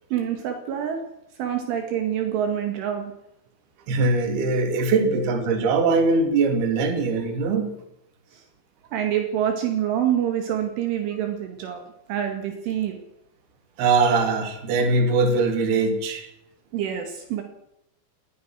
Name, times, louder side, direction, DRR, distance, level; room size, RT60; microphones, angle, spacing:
voice 1, 0.1-1.0 1.4-3.1 5.0-5.3 8.3-8.4 8.9-11.8 12.1-13.0 16.7-17.4, right 10 dB, 70° right, 5 dB, 4.3 m, -26 dB
voice 2, 3.9-7.7 13.8-16.3, right 3 dB, 55° right, 6 dB, 4.4 m, -21 dB
22.0 x 19.0 x 6.4 m, 0.83 s
omnidirectional pair, 6.0 m